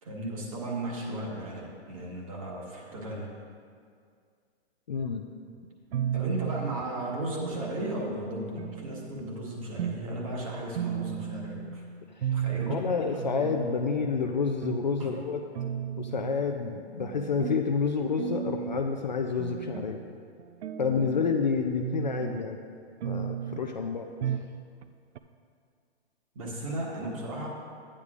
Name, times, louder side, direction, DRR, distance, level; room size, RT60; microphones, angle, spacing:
voice 1, 0.0-3.3 6.1-11.8 12.3-12.8 15.0-15.2 26.3-27.5, right 1 dB, 30° right, -2 dB, 1.3 m, -35 dB
voice 2, 4.9-5.2 12.2-12.3 12.7-15.4 16.0-20.0 20.8-22.6 23.0-24.1, left 5 dB, 45° left, 4 dB, 0.4 m, -29 dB
sound 1, 5.9-6.9 7.4-8.1 8.6-9.2 9.8-10.1 10.4-10.5 10.7-11.7 12.2-12.8 13.2-14.2 14.6-14.8 15.2-15.3 15.5-16.4 17.0-17.6 18.2-18.8 19.4-19.9 20.4-21.4 21.8-22.4 23.0-23.6 24.2-24.5 24.8-24.9 25.1-25.2, right 9 dB, 80° right, 0.6 m, -34 dB
12.0 x 9.7 x 2.4 m, 2.2 s
hypercardioid pair, 175°, 33 cm